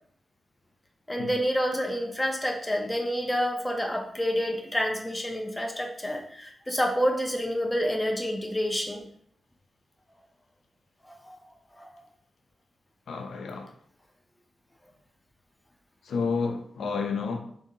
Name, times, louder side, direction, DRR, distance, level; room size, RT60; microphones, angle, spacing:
voice 1, 1.1-9.1 11.0-11.4 11.7-12.0, equal, 5° left, 0.4 m, -28 dB
voice 2, 13.1-13.7 16.0-17.4, left 5 dB, 85° left, 0.4 m, -30 dB
2.7 x 2.6 x 3.7 m
wide cardioid pair, 175°, 0 cm